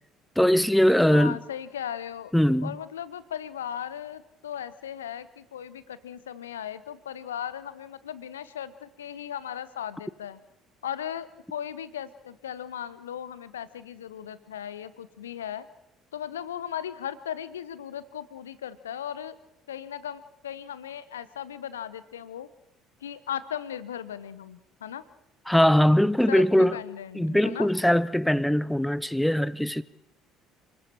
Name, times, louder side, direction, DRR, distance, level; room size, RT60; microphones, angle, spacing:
voice 1, 0.4-1.4 2.3-2.8 25.5-26.8 27.1-29.8, equal, 5° left, 0.8 m, -21 dB
voice 2, 1.1-2.3 2.6-10.4 10.8-15.7 16.1-19.4 19.7-22.5 23.0-25.0 26.3-27.7, left 9 dB, 75° left, 0.9 m, -37 dB
29.0 x 20.5 x 4.5 m
figure-of-eight pair, 55°, 0 cm